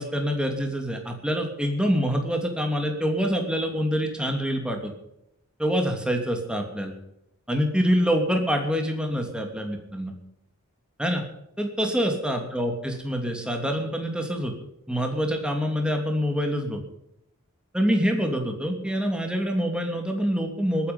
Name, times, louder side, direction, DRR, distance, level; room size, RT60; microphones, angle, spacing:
voice 1, 0.0-4.9 5.6-6.9 7.5-10.1 11.0-11.2 11.6-14.5 14.9-16.8 17.7-20.9, equal, 5° right, 3 dB, 2.8 m, -26 dB
21.0 x 10.0 x 5.5 m, 0.82 s
head